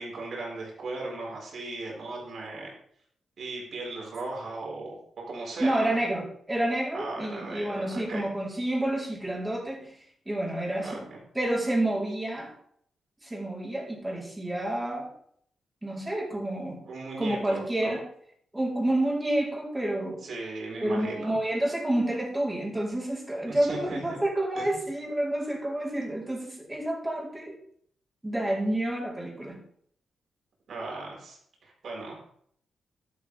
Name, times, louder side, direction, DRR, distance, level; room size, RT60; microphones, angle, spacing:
voice 1, 0.0-2.7 3.4-5.0 5.3-6.0 6.9-8.3 10.8-11.2 16.8-18.0 20.2-21.3 23.5-24.2 24.6-24.8 30.7-32.3, right 2 dB, 60° right, -2 dB, 5.4 m, -37 dB
voice 2, 5.6-10.0 10.3-11.1 11.3-12.5 13.2-15.1 15.8-16.9 17.2-18.1 18.5-20.3 20.8-27.6 28.2-29.6, right 1 dB, 10° right, -3 dB, 4.2 m, -29 dB
12.0 x 12.0 x 3.6 m, 0.67 s
wide cardioid pair, 120°, 0 cm